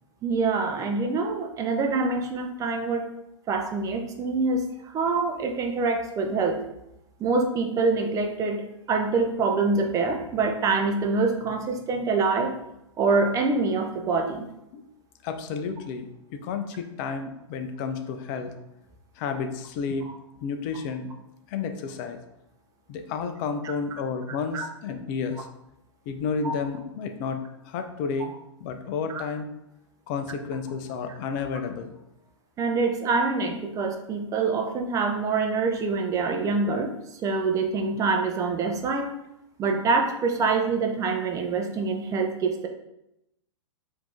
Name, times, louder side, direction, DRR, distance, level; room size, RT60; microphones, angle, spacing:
voice 1, 0.2-3.1 3.5-6.6 7.2-8.6 8.9-12.5 13.0-14.4 24.5-24.7 26.4-26.6 29.1-29.2 31.1-31.2 32.6-36.9 37.2-39.1 39.6-42.7, right 4 dB, 20° right, 4 dB, 0.6 m, -25 dB
voice 2, 15.2-16.1 16.3-18.5 19.2-20.1 20.4-21.1 21.5-22.2 22.9-25.5 26.1-27.4 27.6-28.3 28.6-29.5 30.1-31.9, left 5 dB, 40° left, 7 dB, 0.6 m, -31 dB
4.7 x 2.8 x 3.6 m, 0.85 s
figure-of-eight pair, 110°, 16 cm